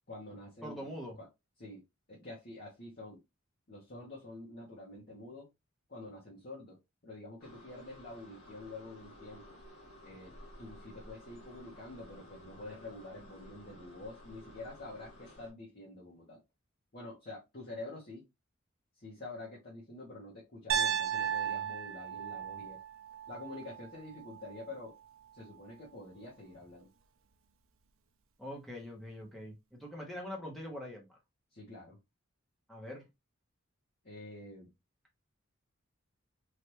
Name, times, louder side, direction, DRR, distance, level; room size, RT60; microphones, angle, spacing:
voice 1, 0.1-1.3 1.6-1.8 2.1-3.2 3.7-5.5 5.9-6.8 7.0-9.6 10.0-16.4 16.9-18.2 19.0-22.8 23.3-25.0 25.3-26.9 31.5-32.0 34.0-34.7, left 2 dB, 45° left, 0.9 m, -47 dB
voice 2, 0.6-1.2 28.4-31.2 32.7-33.0, left 1 dB, ahead, 0.8 m, -43 dB
sound 1, 7.4-15.5, equal, 90° left, 1.7 m, -54 dB
Piano, 20.7-24.8, right 8 dB, 70° right, 0.5 m, -35 dB
3.2 x 2.5 x 2.8 m
head